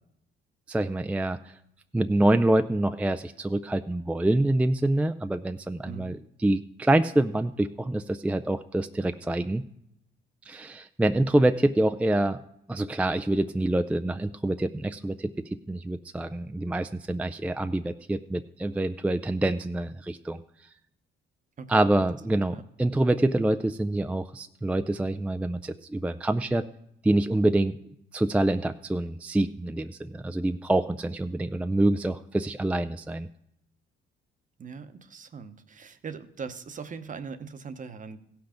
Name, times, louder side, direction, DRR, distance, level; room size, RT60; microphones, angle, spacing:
voice 1, 0.7-1.5 1.9-9.6 10.5-12.4 12.7-15.3 15.7-20.4 21.7-26.7 27.0-27.7 28.1-33.3, right 1 dB, 5° right, 9 dB, 0.3 m, -26 dB
voice 2, 5.8-6.2 21.6-21.9 22.3-22.6 34.6-38.2, right 5 dB, 40° right, 10 dB, 0.9 m, -40 dB
16.0 x 5.9 x 5.0 m, 0.79 s
cardioid pair, 90°, 20 cm